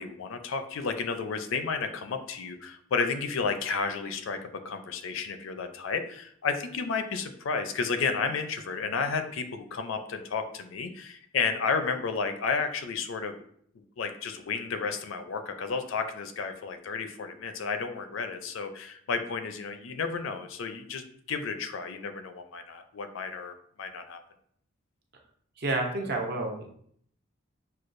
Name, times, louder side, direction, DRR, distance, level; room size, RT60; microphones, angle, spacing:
voice 1, 0.0-13.4 14.0-24.2, left 5 dB, 70° left, 7 dB, 0.4 m, -32 dB
voice 2, 25.6-26.7, right 2 dB, 50° right, 2 dB, 0.7 m, -29 dB
6.2 x 2.3 x 2.5 m, 0.64 s
head